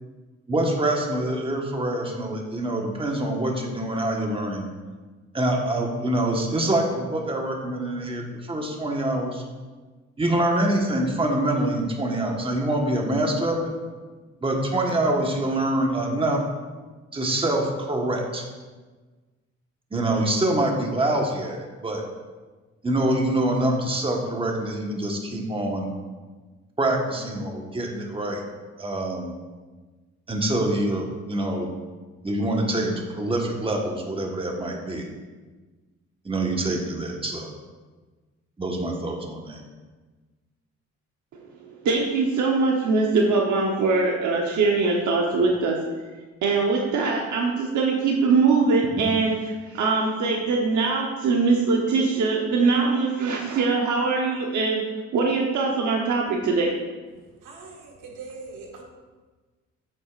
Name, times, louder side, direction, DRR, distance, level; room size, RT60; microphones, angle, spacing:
voice 1, 0.5-4.7 5.3-9.4 10.2-13.7 14.4-16.4 17.1-18.4 19.9-22.0 22.8-25.9 26.8-28.4 28.8-29.3 30.3-31.7 32.2-35.1 36.2-37.5 38.6-39.6 49.0-49.1, right 1 dB, 20° right, 0 dB, 1.3 m, -25 dB
voice 2, 41.8-45.8 46.4-54.8 55.1-56.7, right 4 dB, 75° right, -1 dB, 1.0 m, -22 dB
voice 3, 57.4-58.8, right 4 dB, 90° right, 0 dB, 1.6 m, -41 dB
8.1 x 8.0 x 2.5 m, 1.3 s
cardioid pair, 90°, 30 cm